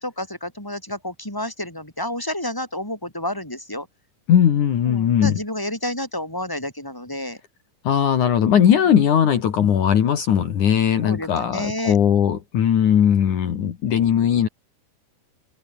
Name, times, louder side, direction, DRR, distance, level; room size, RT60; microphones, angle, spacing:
voice 1, 0.0-3.9 4.9-7.4 11.0-11.9, left 1 dB, 5° left, 7.7 m, -30 dB
voice 2, 4.3-5.4 7.8-14.5, left 9 dB, 65° left, 3.4 m, -18 dB
open air
omnidirectional pair, 3.9 m